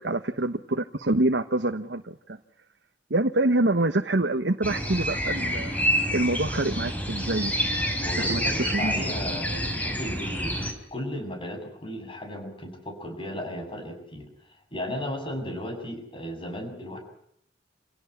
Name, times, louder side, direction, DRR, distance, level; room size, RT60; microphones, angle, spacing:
voice 1, 0.0-2.4 3.1-5.7 6.1-7.9 8.3-9.1, right 2 dB, 70° right, 6 dB, 1.2 m, -26 dB
sound 1, 4.6-10.7, equal, 10° left, 4.8 m, -28 dB
voice 2, 8.0-14.3 14.7-17.0, left 1 dB, 30° left, 5 dB, 7.5 m, -35 dB
28.0 x 17.5 x 10.0 m, 0.72 s
head